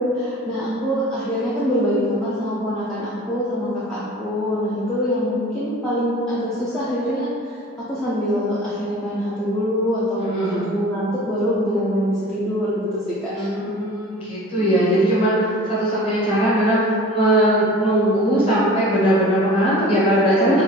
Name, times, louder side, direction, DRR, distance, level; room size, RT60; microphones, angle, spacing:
voice 1, 0.0-7.6 7.9-13.5 14.6-14.8 20.5-20.6, equal, 5° left, -11 dB, 0.3 m, -24 dB
voice 2, 10.2-10.7 13.3-20.6, right 1 dB, 25° left, -9 dB, 1.1 m, -19 dB
3.4 x 2.4 x 3.2 m, 2.5 s
head